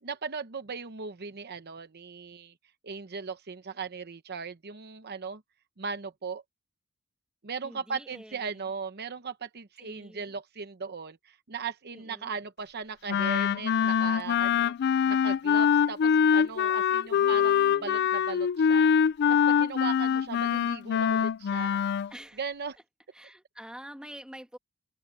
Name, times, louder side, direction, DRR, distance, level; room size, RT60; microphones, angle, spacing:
voice 1, 0.0-2.5 2.8-5.4 5.8-6.4 7.4-14.7 15.1-18.9 19.3-21.8 22.4-22.8, right 5 dB, 50° right, 0.8 m, -38 dB
voice 2, 7.6-8.7 9.8-10.3 11.9-12.3 17.1-18.1 22.1-22.4 23.1-24.6, equal, 5° right, 2.0 m, -47 dB
Wind instrument woodwind instrument, 13.1-22.1, left 7 dB, 50° left, 0.3 m, -24 dB
head